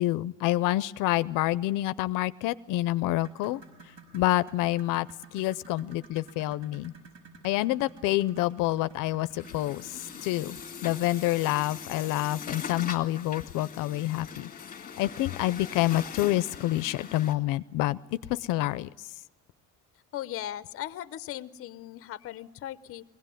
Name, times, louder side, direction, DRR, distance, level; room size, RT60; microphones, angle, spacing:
voice 1, 0.0-3.6 4.1-6.9 7.4-14.5 15.0-19.1, left 16 dB, 90° left, 15 dB, 0.6 m, -28 dB
sound 1, 3.1-11.5 12.9-13.0 13.5-13.6 14.3-14.4, right 3 dB, 70° right, 5.4 m, -52 dB
Truck, 9.3-17.3, left 7 dB, 30° left, 1.8 m, -41 dB
voice 2, 20.1-23.0, left 12 dB, 45° left, 14 dB, 0.7 m, -38 dB
21.5 x 16.5 x 9.1 m, 1.3 s
cardioid pair, 175°, 31 cm